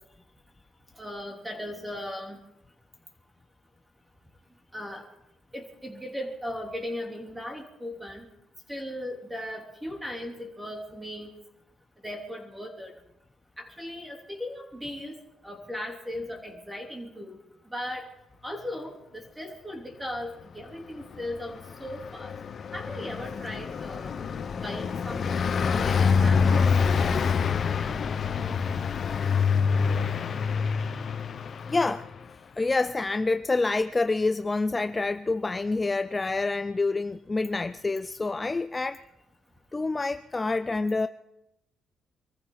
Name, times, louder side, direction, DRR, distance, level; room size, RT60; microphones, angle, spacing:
voice 1, 1.0-2.4 4.7-5.0 5.5-8.3 8.7-11.3 12.0-12.9 13.6-15.2 15.4-17.4 17.7-18.0 18.4-22.3 22.7-24.1 24.6-26.7, left 1 dB, 10° right, 3.4 m, -37 dB
Car passing by, 21.2-32.2, left 6 dB, 50° left, 0.9 m, -26 dB
voice 2, 31.6-32.1 32.6-39.0 39.7-41.1, left 3 dB, 25° left, 0.5 m, -27 dB
24.5 x 14.5 x 4.0 m
cardioid pair, 90°, 0 cm